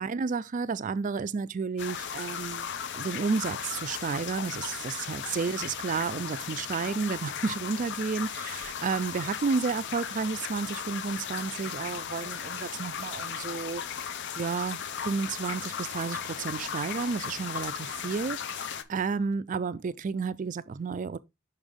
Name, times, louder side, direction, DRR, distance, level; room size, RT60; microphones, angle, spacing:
voice 1, 0.0-13.8 14.4-21.2, right 5 dB, 35° right, 0.3 m, -32 dB
sound 1, 1.8-18.8, left 7 dB, 50° left, 0.6 m, -36 dB
5.8 x 5.3 x 3.6 m
head